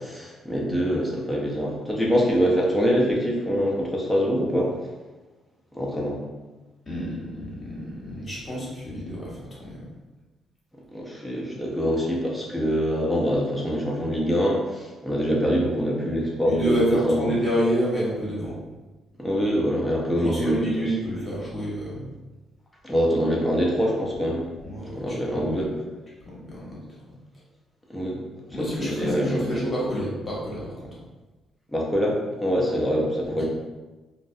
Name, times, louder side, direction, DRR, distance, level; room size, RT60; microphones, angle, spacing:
voice 1, 0.0-4.9 5.7-6.2 10.9-17.3 19.2-20.6 22.8-24.4 25.0-25.7 27.9-28.2 28.6-29.6 31.7-33.4, equal, 5° left, -3 dB, 0.6 m, -24 dB
voice 2, 6.9-9.9 16.4-18.6 20.1-22.1 24.6-25.7 26.2-26.8 28.5-31.0 33.3-33.4, equal, 30° left, -6 dB, 1.0 m, -29 dB
2.3 x 2.0 x 2.6 m, 1.2 s
cardioid pair, 90°, 0 cm